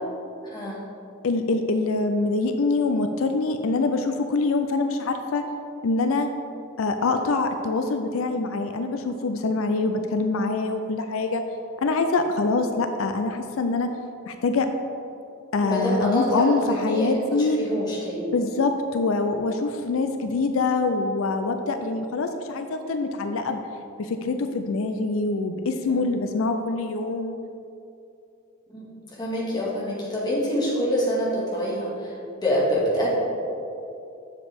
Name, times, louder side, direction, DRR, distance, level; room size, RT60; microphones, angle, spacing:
voice 1, 0.4-0.8 15.6-18.3 25.9-26.1 28.7-33.1, equal, 20° left, -6 dB, 1.9 m, -26 dB
voice 2, 1.2-5.4 5.8-6.3 6.8-11.4 11.8-13.9 14.3-14.7 15.5-17.6 18.3-23.6 24.0-27.4, left 3 dB, 90° left, 7 dB, 0.5 m, -24 dB
7.6 x 7.2 x 3.5 m, 2.7 s
head